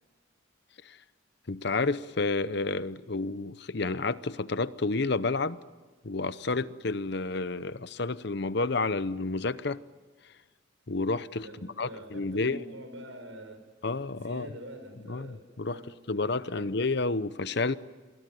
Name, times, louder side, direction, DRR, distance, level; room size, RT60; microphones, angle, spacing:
voice 1, 1.5-5.6 6.0-9.8 10.9-12.6 13.8-14.5 15.1-15.8 16.1-17.8, left 3 dB, 55° left, 15 dB, 0.8 m, -30 dB
voice 2, 11.4-13.6 14.1-16.8, equal, 80° right, 7 dB, 6.3 m, -45 dB
28.0 x 21.5 x 9.4 m, 1.3 s
head